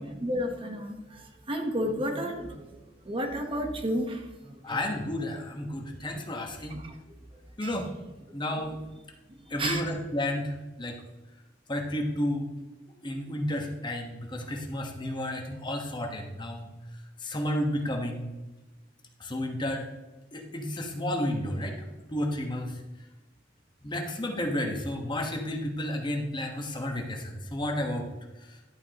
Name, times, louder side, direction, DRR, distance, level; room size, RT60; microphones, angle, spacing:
voice 1, 0.1-2.8 3.0-4.8 6.4-7.0 7.6-7.8 8.6-8.7 9.5-9.8, equal, 30° right, 3 dB, 1.1 m, -32 dB
voice 2, 4.6-6.8 7.6-7.9 8.3-8.8 9.5-11.0 11.7-12.5 13.0-16.7 17.2-18.3 19.2-19.9 20.3-22.7 23.8-28.1, left 1 dB, 25° left, 2 dB, 1.2 m, -32 dB
11.5 x 8.2 x 2.9 m, 1.1 s
head